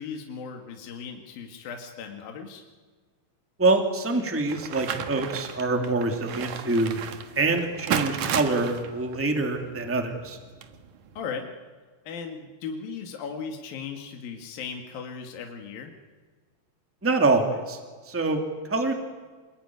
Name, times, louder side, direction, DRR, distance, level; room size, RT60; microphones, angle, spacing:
voice 1, 0.0-2.6 11.2-11.5 12.1-15.9, left 6 dB, 70° left, 4 dB, 3.6 m, -37 dB
voice 2, 3.6-7.0 7.3-10.4 17.0-17.8 18.0-18.9, right 3 dB, 5° right, 4 dB, 2.1 m, -25 dB
sound 1, 4.5-11.2, right 8 dB, 60° right, 2.7 m, -34 dB
27.0 x 21.5 x 9.7 m, 1.5 s
omnidirectional pair, 4.4 m